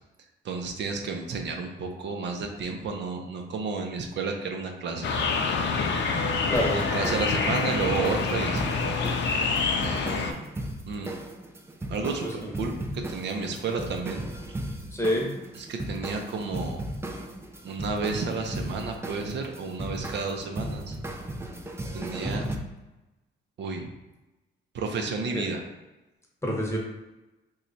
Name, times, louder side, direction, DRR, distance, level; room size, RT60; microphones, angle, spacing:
voice 1, 0.4-5.1 6.7-8.7 10.9-11.1 11.9-14.3 15.6-16.8 17.6-21.0 21.9-22.4 23.6-23.9 24.7-25.6, right 4 dB, 65° right, 3 dB, 0.6 m, -31 dB
sound 1, 5.0-10.3, left 4 dB, 65° left, 0.5 m, -26 dB
sound 2, 6.5-22.6, right 1 dB, 10° right, 0.4 m, -36 dB
voice 2, 14.9-15.3 25.3-25.4 26.4-26.8, equal, 15° left, -1 dB, 0.9 m, -27 dB
3.0 x 2.3 x 4.0 m, 1.0 s
cardioid pair, 90°, 20 cm